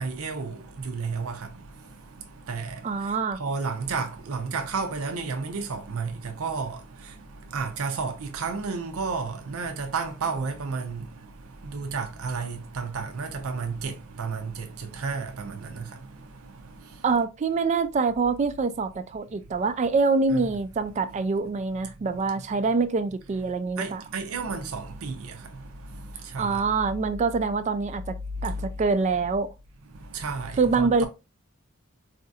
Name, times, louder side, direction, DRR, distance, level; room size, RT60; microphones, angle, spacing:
voice 1, 0.0-17.1 19.3-19.7 20.3-20.4 21.1-21.2 23.7-26.7 28.4-28.7 29.8-31.1, right 4 dB, 75° right, 0.6 m, -33 dB
voice 2, 2.8-3.4 17.0-24.0 26.4-28.2 28.4-29.5 30.6-31.1, right 4 dB, 35° right, 0.3 m, -25 dB
4.2 x 2.7 x 2.3 m
head